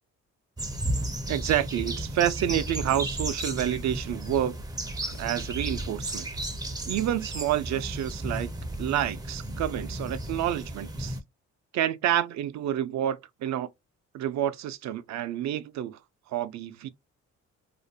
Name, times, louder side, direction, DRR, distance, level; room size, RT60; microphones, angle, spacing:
sound 1, 0.6-11.2, right 1 dB, 15° right, 0.4 m, -34 dB
voice 1, 1.3-4.5 5.0-6.3 6.9-8.5 8.8-11.2 11.7-13.7 14.1-16.0 16.3-16.9, right 11 dB, 65° right, 0.4 m, -29 dB
2.5 x 2.1 x 2.6 m
cardioid pair, 90°, 30 cm